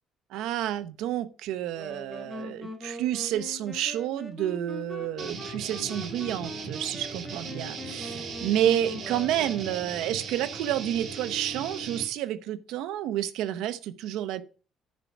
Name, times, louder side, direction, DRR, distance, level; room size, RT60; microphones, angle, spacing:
voice 1, 0.3-14.4, right 11 dB, 85° right, 0.8 m, -30 dB
sound 1, 1.7-10.2, left 1 dB, 10° left, 1.8 m, -42 dB
sound 2, 5.2-12.0, right 5 dB, 50° right, 1.9 m, -38 dB
10.5 x 4.6 x 5.9 m
cardioid pair, 145°, 0 cm